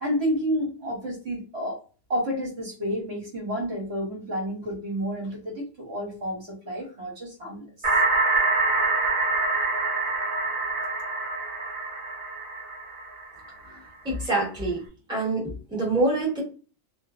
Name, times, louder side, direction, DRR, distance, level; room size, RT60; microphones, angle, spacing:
voice 1, 0.0-1.8 2.1-7.9, equal, 60° right, -2 dB, 1.2 m, -30 dB
sound 1, 7.8-13.5, right 3 dB, 30° right, 0.7 m, -25 dB
voice 2, 14.0-14.8 15.1-16.4, right 2 dB, 5° right, -5 dB, 1.1 m, -25 dB
2.5 x 2.2 x 2.4 m, 0.36 s
omnidirectional pair, 1.3 m